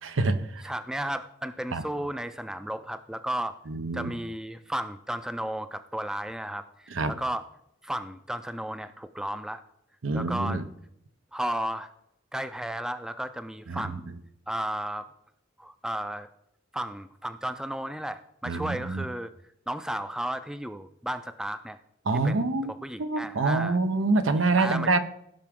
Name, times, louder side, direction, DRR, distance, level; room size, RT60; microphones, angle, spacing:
voice 1, 0.0-0.6 1.7-1.8 3.7-4.1 6.9-7.1 10.0-10.6 13.7-13.9 18.5-19.1 22.1-22.7 23.0-25.0, right 3 dB, 90° right, 0.8 m, -26 dB
voice 2, 0.6-3.6 3.9-7.5 7.8-9.6 10.1-10.6 11.3-11.9 12.3-14.1 14.5-15.1 15.6-16.3 16.7-19.3 19.7-21.8 22.2-23.8 24.5-25.0, right 1 dB, 5° right, 0.3 m, -34 dB
16.5 x 5.9 x 3.6 m
head